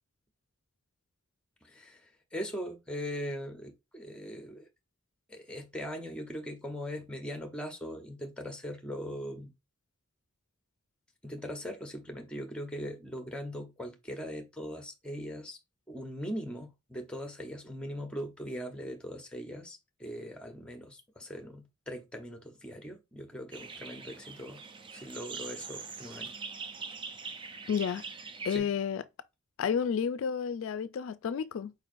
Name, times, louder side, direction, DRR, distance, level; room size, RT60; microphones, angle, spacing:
voice 1, 1.6-4.7 5.3-9.5 11.2-15.6 15.9-24.6 24.9-26.3 28.5-28.7, equal, 5° left, 0.8 m, -40 dB
sound 1, 23.5-28.6, right 5 dB, 20° right, 0.4 m, -43 dB
voice 2, 27.7-28.0 28.4-29.0 29.6-31.7, left 7 dB, 65° left, 0.3 m, -31 dB
4.6 x 4.5 x 2.5 m
head